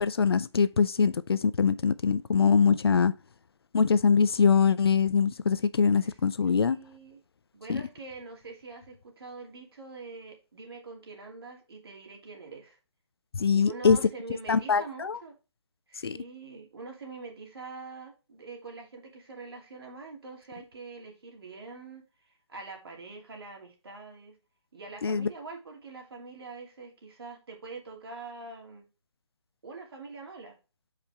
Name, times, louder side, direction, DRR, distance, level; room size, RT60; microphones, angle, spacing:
voice 1, 0.0-3.1 3.7-6.8 7.7-7.8 13.3-14.0 14.5-15.2 16.0-16.2 25.0-25.3, left 6 dB, 60° left, 0.5 m, -23 dB
voice 2, 6.0-7.2 7.5-12.8 13.5-15.4 15.9-24.3 24.7-28.9 29.6-30.6, right 4 dB, 55° right, 2.7 m, -44 dB
7.0 x 5.0 x 3.4 m
figure-of-eight pair, 155°, 15 cm